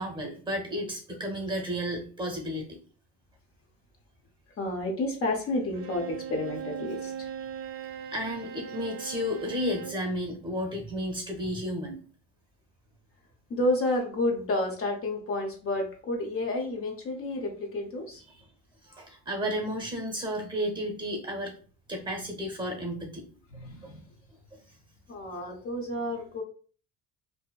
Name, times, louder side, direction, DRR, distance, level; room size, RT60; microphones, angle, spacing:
voice 1, 0.0-2.8 8.1-12.0 18.8-21.5 21.9-23.3 23.8-23.9 24.5-24.6, equal, 15° right, 1 dB, 0.8 m, -32 dB
voice 2, 4.6-7.3 13.5-18.2 23.5-24.0 25.1-26.4, left 1 dB, 40° left, 1 dB, 0.7 m, -30 dB
Bowed string instrument, 5.7-10.1, right 7 dB, 40° right, 0.4 m, -39 dB
2.7 x 2.1 x 2.3 m, 0.41 s
supercardioid pair, 90°, 36 cm